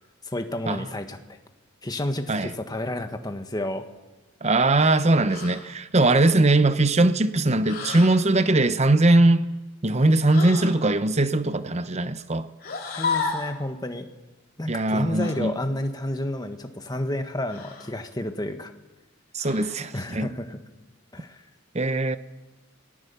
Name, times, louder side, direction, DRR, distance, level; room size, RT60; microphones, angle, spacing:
voice 1, 0.2-1.2 1.8-3.8 12.9-14.1 14.6-18.7 19.9-20.6 21.1-21.4, left 1 dB, 20° left, 1.5 m, -30 dB
voice 2, 4.4-9.5 9.8-12.5 14.7-15.6 19.3-20.3 21.7-22.2, right 2 dB, 30° right, 0.9 m, -20 dB
sound 1, 5.3-5.7 7.6-8.2 10.3-10.8 12.6-13.6 15.2-15.4 17.5-18.0 19.4-19.9, left 4 dB, 45° left, 3.4 m, -32 dB
26.5 x 19.0 x 7.0 m
head